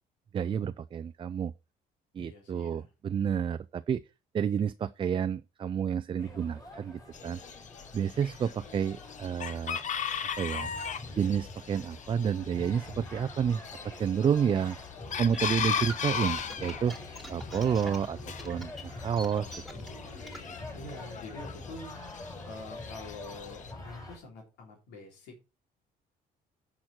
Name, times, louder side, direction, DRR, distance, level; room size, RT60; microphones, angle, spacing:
voice 1, 0.3-1.5 2.1-4.0 4.3-7.4 7.9-9.8 10.4-10.7 11.2-13.6 14.0-14.8 15.2-16.9 17.3-18.2 18.4-19.5, right 7 dB, 30° right, 0.4 m, -30 dB
voice 2, 2.2-2.9 20.7-21.9 22.4-25.3, left 2 dB, 90° left, 3.9 m, -46 dB
sound 1, 6.2-24.2, left 1 dB, 20° left, 5.3 m, -46 dB
Chicken rooster, 7.1-23.7, left 7 dB, 45° left, 1.1 m, -38 dB
sound 2, 15.1-20.5, right 1 dB, ahead, 2.0 m, -45 dB
10.5 x 6.1 x 4.4 m
cardioid pair, 110°, 17 cm